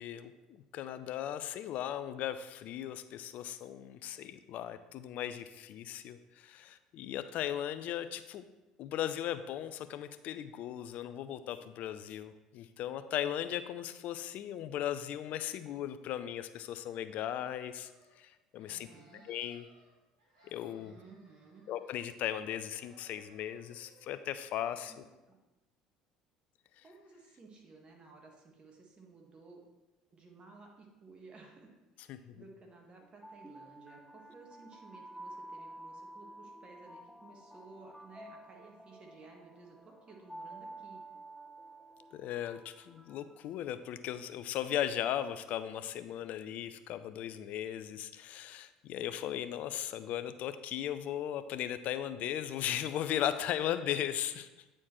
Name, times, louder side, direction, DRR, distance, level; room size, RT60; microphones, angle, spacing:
voice 1, 0.0-8.4 8.8-17.9 18.2-18.9 19.3-19.6 20.5-21.0 21.7-25.0 32.1-32.2 42.1-54.5, left 11 dB, 55° left, 12 dB, 0.4 m, -37 dB
sound 1, 17.0-18.2 18.5-19.9 20.2-22.3 22.6-24.6, right 2 dB, 80° right, 1.8 m, -65 dB
voice 2, 18.7-19.2 20.8-21.6 24.9-25.4 26.8-29.6 30.1-41.0, right 3 dB, 35° right, 1 dB, 1.4 m, -56 dB
sound 2, 33.0-44.1, right 1 dB, ahead, 0.6 m, -51 dB
8.8 x 4.2 x 3.0 m, 1.1 s
hypercardioid pair, 65°, 3 cm